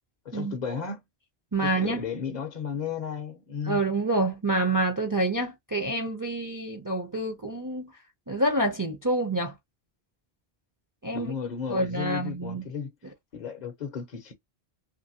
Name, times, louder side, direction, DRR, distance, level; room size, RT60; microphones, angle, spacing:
voice 1, 0.2-1.0 1.6-3.8 11.1-12.9 13.3-14.3, left 6 dB, 50° left, 0.7 m, -34 dB
voice 2, 1.5-2.0 3.6-7.9 8.3-9.6 11.0-11.3 11.7-12.6, right 2 dB, 25° right, 0.5 m, -27 dB
2.9 x 2.6 x 2.7 m
omnidirectional pair, 1.1 m